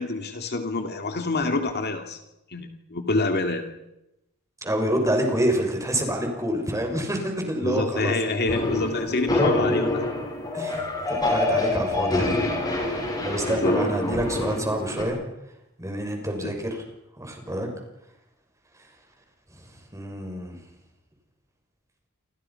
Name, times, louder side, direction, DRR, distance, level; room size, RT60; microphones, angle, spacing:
voice 1, 0.0-2.2 2.5-3.7 7.6-10.1 13.4-13.8 16.3-16.5, left 2 dB, 50° left, 5 dB, 2.4 m, -27 dB
voice 2, 4.6-8.3 10.5-12.4 13.2-15.2 15.8-16.8 17.2-17.7 19.5-20.6, equal, 15° right, 3 dB, 6.3 m, -27 dB
sound 1, 8.5-15.0, left 2 dB, 20° left, 6.8 m, -26 dB
29.0 x 26.0 x 5.8 m, 0.88 s
head